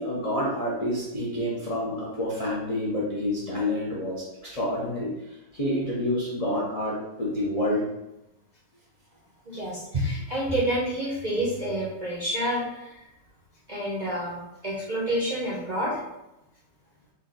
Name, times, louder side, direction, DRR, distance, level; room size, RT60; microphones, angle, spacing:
voice 1, 0.0-5.1 5.5-7.9, left 1 dB, 45° left, -6 dB, 0.4 m, -28 dB
voice 2, 9.4-13.1 13.7-16.0, right 1 dB, 40° right, -8 dB, 0.6 m, -28 dB
3.9 x 2.4 x 3.9 m, 0.92 s
omnidirectional pair, 1.8 m